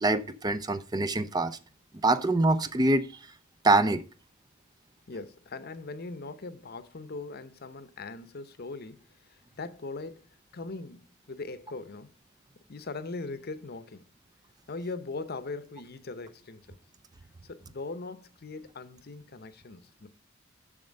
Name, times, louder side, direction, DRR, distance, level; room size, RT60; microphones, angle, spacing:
voice 1, 0.0-1.6 2.0-3.1 3.6-4.0, right 2 dB, 20° right, 0.5 m, -24 dB
voice 2, 5.1-12.2 12.7-14.0 14.7-16.8 17.4-20.1, left 3 dB, 50° left, 0.8 m, -40 dB
7.4 x 6.6 x 5.2 m
head